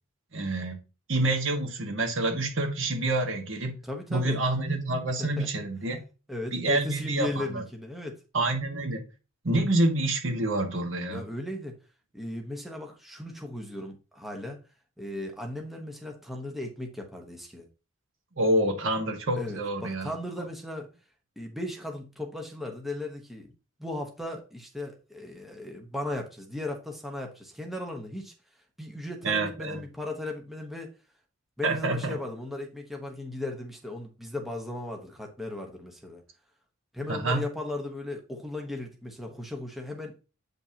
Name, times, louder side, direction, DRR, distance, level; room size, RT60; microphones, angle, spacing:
voice 1, 0.3-0.8 1.1-3.7 4.1-6.0 6.5-7.6 8.3-9.0 9.4-11.3 18.4-20.1 29.2-29.8 31.6-32.2 37.1-37.4, right 2 dB, 65° right, 1.5 m, -27 dB
voice 2, 3.8-4.4 5.2-5.5 6.3-8.2 11.1-11.8 12.1-14.6 15.0-17.7 19.4-20.9 21.4-23.5 23.8-28.3 28.8-30.9 31.6-36.2 36.9-40.1, left 1 dB, ahead, 1.0 m, -36 dB
8.4 x 5.3 x 2.8 m
head